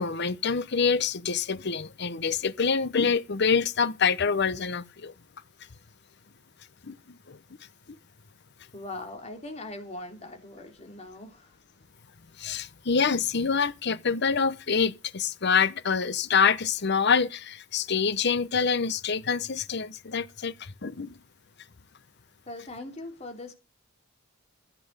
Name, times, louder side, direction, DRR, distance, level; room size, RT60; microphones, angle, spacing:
voice 1, 0.0-5.1 6.8-7.4 12.4-21.1, left 5 dB, 55° left, 0.9 m, -26 dB
voice 2, 8.7-11.5 22.5-23.5, left 2 dB, 30° left, 3.1 m, -40 dB
15.0 x 7.8 x 6.7 m
head